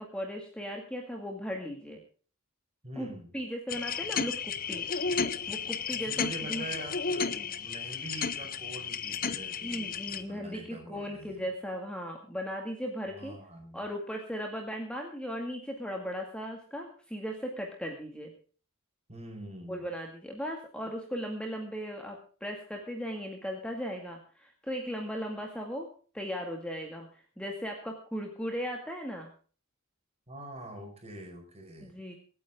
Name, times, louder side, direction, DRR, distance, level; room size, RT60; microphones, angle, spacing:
voice 1, 0.0-2.0 3.0-4.9 5.5-6.6 7.4-7.5 9.4-13.4 13.7-18.3 19.7-25.9 26.1-29.3 31.8-32.1, equal, 5° left, 1 dB, 2.1 m, -37 dB
voice 2, 2.8-3.3 5.9-11.4 13.1-13.8 19.1-19.8 30.3-32.2, right 1 dB, 30° right, 3 dB, 5.2 m, -45 dB
sound 1, 3.7-10.2, left 6 dB, 40° left, 0.9 m, -33 dB
24.5 x 9.5 x 3.7 m, 0.40 s
head